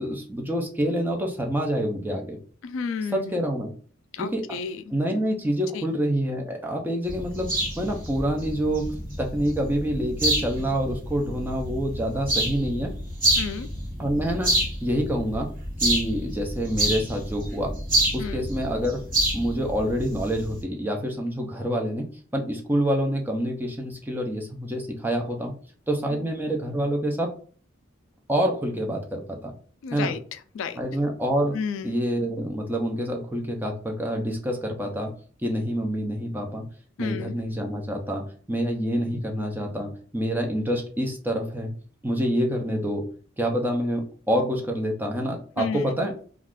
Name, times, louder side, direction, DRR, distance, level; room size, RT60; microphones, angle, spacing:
voice 1, 0.0-2.4 3.1-3.7 4.2-4.6 4.9-12.9 14.0-14.5 14.8-15.5 15.8-17.7 18.1-19.0 19.3-25.5 25.9-27.3 28.3-29.5 29.9-30.1 30.8-31.6 31.8-35.1 35.4-36.6 37.0-41.7 42.0-43.0 43.4-46.1, equal, 10° right, 1 dB, 0.5 m, -27 dB
voice 2, 2.6-3.4 4.1-4.8 5.7-5.9 13.3-13.7 18.2-18.5 26.1-26.3 29.8-30.8 31.5-31.9 37.0-37.4 45.6-46.1, left 6 dB, 65° left, 11 dB, 0.3 m, -32 dB
sound 1, 7.1-20.6, right 1 dB, 40° right, 1.1 m, -28 dB
2.4 x 2.3 x 3.5 m, 0.43 s
head